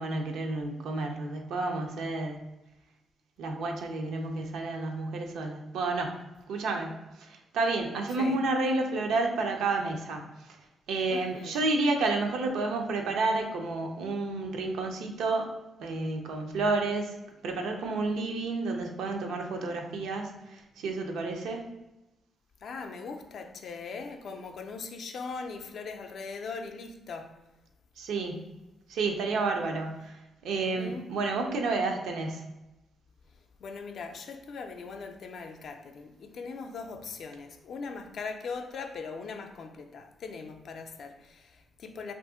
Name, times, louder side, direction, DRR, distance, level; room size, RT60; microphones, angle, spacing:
voice 1, 0.0-2.4 3.4-6.1 6.5-10.3 10.9-15.5 15.8-17.2 17.4-21.7 28.0-28.4 28.9-30.2 30.4-32.4, right 3 dB, 85° right, 0.5 m, -30 dB
voice 2, 11.1-11.6 22.6-27.3 30.6-31.1 33.6-42.1, left 4 dB, 65° left, 0.4 m, -40 dB
2.7 x 2.5 x 3.6 m
cardioid pair, 85°, 0 cm